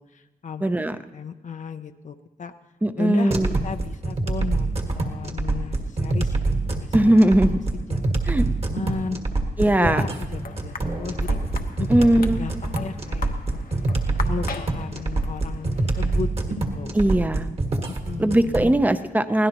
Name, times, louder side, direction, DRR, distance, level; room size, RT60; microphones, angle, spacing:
voice 1, 0.0-2.5 3.0-3.3 3.6-6.4 6.7-7.3 7.7-9.2 9.6-11.4 11.8-13.6 14.3-16.3 16.7-17.0 17.9-18.6, left 6 dB, 55° left, 8 dB, 0.6 m, -35 dB
voice 2, 0.6-1.0 2.8-3.6 6.9-7.6 8.3-8.4 9.6-10.0 11.9-12.4 16.9-17.5 18.2-19.5, right 1 dB, 10° right, 11 dB, 0.6 m, -19 dB
sound 1, 3.3-18.7, right 2 dB, 40° right, 1.7 m, -25 dB
sound 2, 10.4-16.2, left 5 dB, 70° left, 1.0 m, -39 dB
23.5 x 17.0 x 3.0 m, 1.2 s
wide cardioid pair, 140°, 15 cm